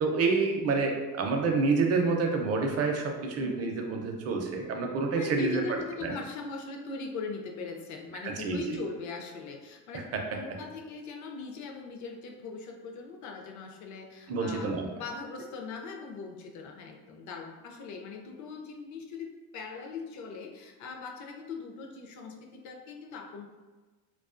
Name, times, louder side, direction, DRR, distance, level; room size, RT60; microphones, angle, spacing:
voice 1, 0.0-6.1 8.2-8.8 9.9-10.0 14.3-14.9, right 4 dB, 40° right, 2 dB, 0.5 m, -28 dB
voice 2, 5.2-23.5, left 4 dB, 45° left, 2 dB, 0.5 m, -40 dB
2.3 x 2.3 x 2.4 m, 1.3 s
supercardioid pair, 100°, 41 cm